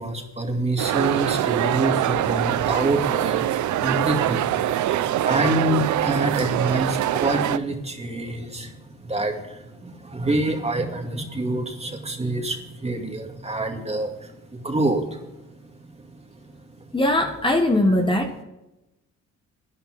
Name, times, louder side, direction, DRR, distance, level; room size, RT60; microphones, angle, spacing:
voice 1, 0.0-15.4 15.6-16.6 17.9-18.0, right 2 dB, 20° right, 4 dB, 2.3 m, -27 dB
sound 1, 0.8-7.6, right 12 dB, 70° right, 0.7 m, -24 dB
voice 2, 16.9-18.4, left 1 dB, 15° left, 3 dB, 1.7 m, -20 dB
11.5 x 10.5 x 6.0 m, 0.93 s
cardioid pair, 90°, 30 cm